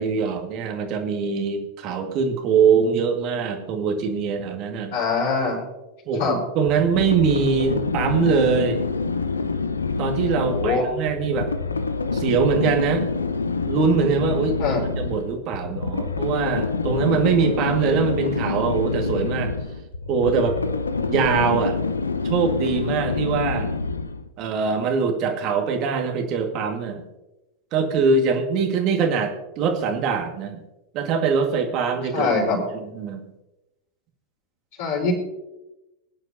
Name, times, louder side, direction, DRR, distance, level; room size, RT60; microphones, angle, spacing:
voice 1, 0.0-4.9 6.1-8.8 10.0-11.5 12.1-13.1 13.7-19.5 20.1-20.6 21.1-21.8 22.2-23.7 24.4-27.1 27.7-30.6 30.9-32.3 32.9-33.2, right 5 dB, 40° right, 5 dB, 1.8 m, -23 dB
voice 2, 4.9-5.6 6.2-6.4 10.4-10.9 14.6-14.8 32.1-32.6 34.8-35.1, left 4 dB, 55° left, -9 dB, 4.5 m, -23 dB
sound 1, 6.7-24.3, left 4 dB, 75° left, 0.7 m, -26 dB
21.0 x 10.5 x 2.8 m, 0.99 s
figure-of-eight pair, 90°, 0 cm